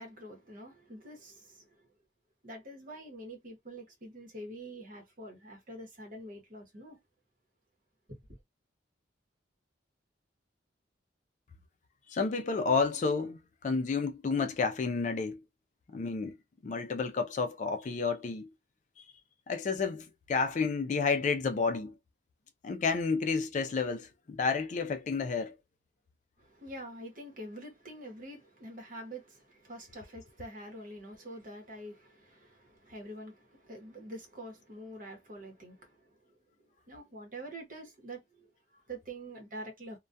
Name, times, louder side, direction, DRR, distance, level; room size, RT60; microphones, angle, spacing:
voice 1, 0.0-1.7 2.4-7.0 26.4-36.1 36.9-40.0, right 1 dB, 45° right, 0.9 m, -46 dB
voice 2, 12.1-13.4 13.6-15.4 15.9-16.4 16.6-18.5 19.5-21.9 22.6-25.5, left 4 dB, 40° left, 0.3 m, -30 dB
2.2 x 2.2 x 2.6 m
head